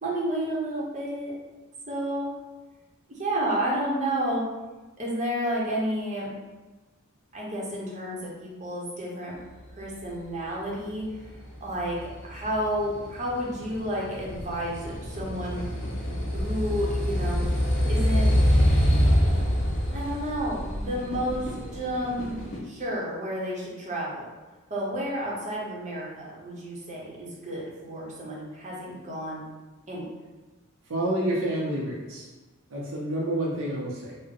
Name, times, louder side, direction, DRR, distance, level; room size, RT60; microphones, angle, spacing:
voice 1, 0.0-1.3 1.9-2.3 3.1-4.4 5.0-6.3 7.3-9.4 9.8-11.3 11.6-12.0 12.2-15.6 16.3-17.5 17.9-18.3 19.9-22.3 22.6-24.2 24.7-29.4 29.9-30.1, equal, 35° right, -4 dB, 0.8 m, -31 dB
sound 1, 11.2-22.6, equal, 60° left, 0.8 m, -26 dB
voice 2, 30.9-32.3 32.7-34.2, right 1 dB, 65° right, -4 dB, 0.6 m, -28 dB
3.5 x 2.1 x 3.7 m, 1.2 s
head